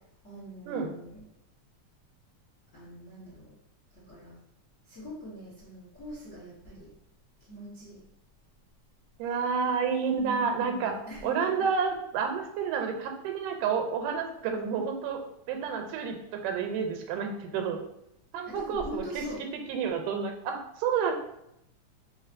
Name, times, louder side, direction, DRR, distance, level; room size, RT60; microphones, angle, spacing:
voice 1, 0.2-1.2 2.7-3.5 3.9-4.3 4.9-6.9 7.5-8.0 10.2-11.5 18.4-19.4, equal, 80° left, -10 dB, 0.6 m, -42 dB
voice 2, 9.2-11.0 11.2-17.8 18.3-21.1, right 6 dB, 90° right, 4 dB, 2.1 m, -30 dB
4.8 x 2.8 x 2.5 m, 0.80 s
omnidirectional pair, 3.7 m